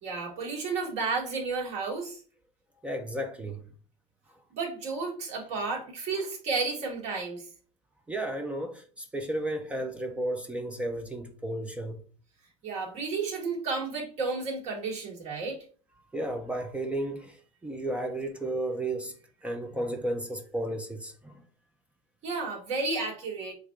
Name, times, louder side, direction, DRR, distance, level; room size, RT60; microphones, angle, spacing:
voice 1, 0.0-2.2 4.5-7.5 12.6-15.6 22.2-23.5, right 4 dB, 50° right, 3.4 m, -32 dB
voice 2, 2.8-3.6 8.1-12.0 16.1-21.4, right 1 dB, 10° right, 0.8 m, -33 dB
8.0 x 3.2 x 3.8 m
supercardioid pair, 140°, 15 cm